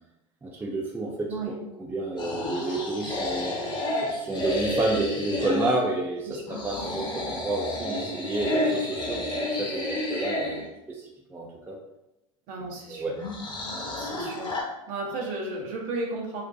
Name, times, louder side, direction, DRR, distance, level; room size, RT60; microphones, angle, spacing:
voice 1, 0.4-3.5 4.0-11.8 12.6-13.2, right 2 dB, 10° right, 0 dB, 0.3 m, -30 dB
sound 1, 2.2-5.8 6.5-10.6 13.2-14.6, left 1 dB, 25° left, 0.7 m, -30 dB
voice 2, 6.3-6.6 12.5-13.1 14.0-14.6 14.9-16.4, right 2 dB, 50° right, 0 dB, 0.7 m, -34 dB
2.4 x 2.1 x 2.5 m, 0.88 s
figure-of-eight pair, 75°, 17 cm